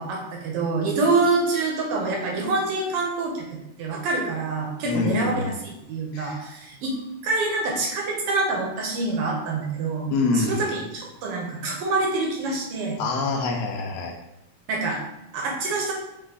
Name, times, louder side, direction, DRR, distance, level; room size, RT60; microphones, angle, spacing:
voice 1, 0.0-3.5 3.8-7.0 7.2-10.1 10.3-13.0 14.7-15.0 15.3-15.9, right 3 dB, 80° right, -1 dB, 1.3 m, -26 dB
voice 2, 4.8-5.5 6.1-6.4 10.1-10.6 13.0-14.1, left 3 dB, 80° left, 2 dB, 1.4 m, -25 dB
4.8 x 2.4 x 3.9 m, 0.86 s
omnidirectional pair, 3.4 m